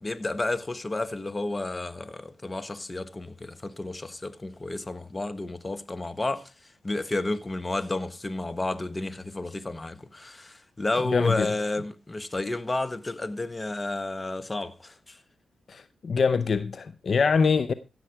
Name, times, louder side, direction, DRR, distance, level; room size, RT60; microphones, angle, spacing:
voice 1, 0.0-6.5 6.8-15.2, left 2 dB, 30° left, 1.3 m, -31 dB
voice 2, 11.0-11.5 15.7-17.7, left 5 dB, 60° left, 0.6 m, -24 dB
15.5 x 7.7 x 4.7 m
supercardioid pair, 40°, 0 cm